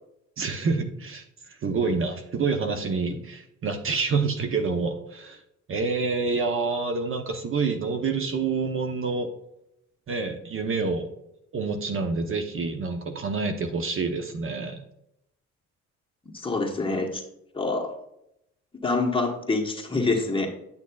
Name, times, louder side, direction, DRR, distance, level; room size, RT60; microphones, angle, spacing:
voice 1, 0.4-5.4 5.7-9.3 10.1-11.1 11.5-14.8, right 4 dB, 45° right, 6 dB, 0.8 m, -27 dB
voice 2, 16.3-17.2 17.5-17.9 18.8-20.5, left 3 dB, 15° left, 1 dB, 1.2 m, -26 dB
8.7 x 6.3 x 2.3 m, 0.81 s
cardioid pair, 90°, 30 cm